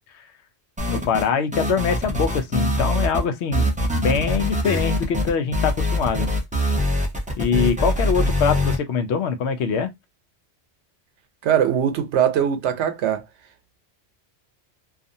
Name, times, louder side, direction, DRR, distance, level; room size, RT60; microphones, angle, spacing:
sound 1, 0.8-1.3 1.5-3.2 3.5-8.8, left 1 dB, 10° right, 0.4 m, -23 dB
voice 1, 0.9-6.3 7.4-9.9, left 6 dB, 80° left, 0.9 m, -23 dB
voice 2, 11.4-13.2, right 9 dB, 85° right, 0.9 m, -21 dB
2.5 x 2.4 x 2.6 m
omnidirectional pair, 1.1 m